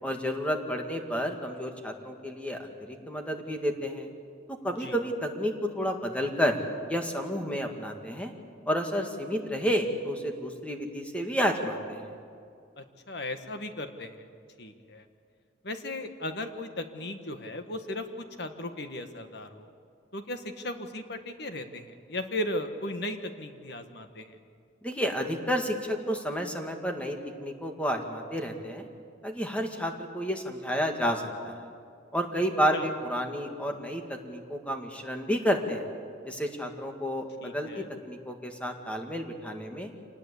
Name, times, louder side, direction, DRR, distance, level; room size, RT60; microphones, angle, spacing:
voice 1, 0.0-4.1 4.5-6.6 6.9-8.3 8.7-12.0 24.8-28.9 29.2-31.7 32.1-35.8 36.3-39.9, equal, 5° left, 3 dB, 1.9 m, -31 dB
voice 2, 12.8-14.2 14.6-15.0 15.6-19.7 20.1-24.4 32.7-32.9 37.4-37.9, left 1 dB, 60° left, 7 dB, 1.7 m, -36 dB
26.5 x 19.0 x 8.4 m, 2.4 s
head